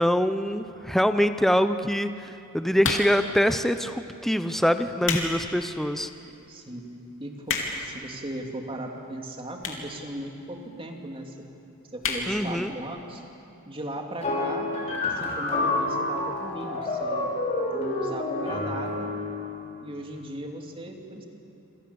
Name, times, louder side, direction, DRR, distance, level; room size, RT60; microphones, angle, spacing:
voice 1, 0.0-6.1 12.3-12.7, equal, ahead, 9 dB, 0.7 m, -24 dB
sound 1, 2.8-3.3 4.1-4.3 4.8-5.3 5.7-5.8 6.5-6.6 6.8-6.9 7.1-7.9 8.7-8.8 9.6-9.9 10.2-10.3 10.5-10.6 10.8-10.9 11.3-11.5 12.0-12.3 12.7-12.8 12.9-13.0, left 5 dB, 65° left, 3.4 m, -29 dB
voice 2, 6.5-6.9 7.2-11.3 11.9-13.2 13.6-14.7 15.1-17.3 17.7-19.1 19.8-21.3, right 1 dB, 25° right, 2 dB, 2.7 m, -37 dB
sound 2, 14.2-19.4, left 2 dB, 30° left, 5.7 m, -28 dB
27.5 x 27.5 x 7.1 m, 2.8 s
head